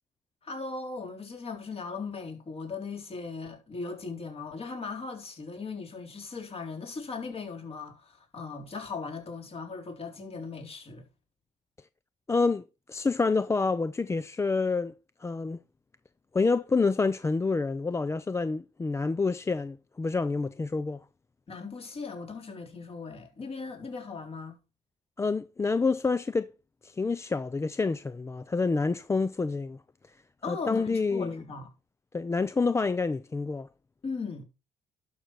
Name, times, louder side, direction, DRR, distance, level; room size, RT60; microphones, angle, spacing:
voice 1, 0.4-11.1 21.5-24.6 30.4-31.7 34.0-34.4, left 4 dB, 35° left, 3.8 m, -38 dB
voice 2, 12.3-14.9 15.2-15.6 16.3-21.0 25.2-26.5 26.8-29.8 30.5-31.4 32.1-33.7, left 4 dB, 15° left, 0.5 m, -28 dB
11.5 x 6.4 x 4.5 m
cardioid pair, 110°, 17 cm